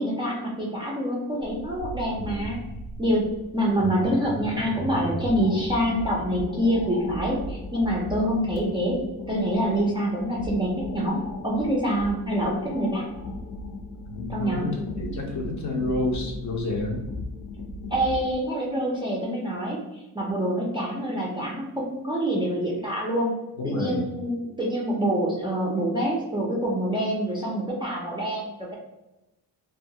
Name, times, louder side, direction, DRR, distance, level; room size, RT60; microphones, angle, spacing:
voice 1, 0.0-2.6 3.0-3.2 3.5-9.0 9.3-13.0 14.3-14.7 17.9-19.8 20.1-23.3 23.6-28.8, equal, 15° right, -5 dB, 0.3 m, -26 dB
sound 1, 1.4-18.4, left 1 dB, 80° left, 0.7 m, -36 dB
voice 2, 2.1-2.7 14.1-17.0 23.6-24.1, left 2 dB, 45° left, 1 dB, 0.5 m, -30 dB
2.8 x 2.3 x 2.6 m, 0.98 s
wide cardioid pair, 170°, 40 cm